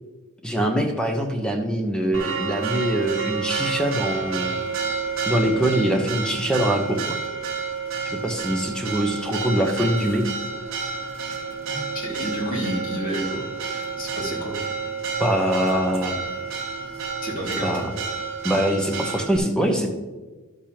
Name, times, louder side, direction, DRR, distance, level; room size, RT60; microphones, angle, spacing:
voice 1, 0.4-4.5 5.3-7.2 8.0-10.2 15.2-16.1 17.6-17.9 18.4-19.9, right 1 dB, 5° left, 2 dB, 0.9 m, -23 dB
Church bell, 2.1-19.4, right 5 dB, 60° right, 1.3 m, -30 dB
voice 2, 11.7-14.5 17.2-17.9, equal, 40° left, -3 dB, 2.2 m, -30 dB
12.0 x 6.8 x 2.9 m, 1.2 s
head